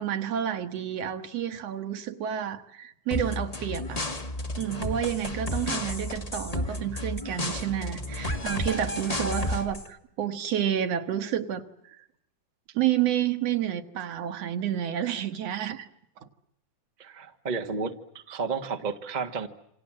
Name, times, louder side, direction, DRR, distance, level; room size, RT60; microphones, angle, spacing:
voice 1, 0.0-4.0 4.6-11.6 12.7-15.9 16.2-16.3, right 10 dB, 60° right, 9 dB, 2.2 m, -30 dB
sound 1, 3.1-9.9, left 1 dB, 25° left, 0.7 m, -32 dB
voice 2, 17.0-17.9 18.3-19.5, right 5 dB, 35° right, 5 dB, 0.6 m, -31 dB
28.0 x 26.5 x 7.5 m, 0.77 s
omnidirectional pair, 3.5 m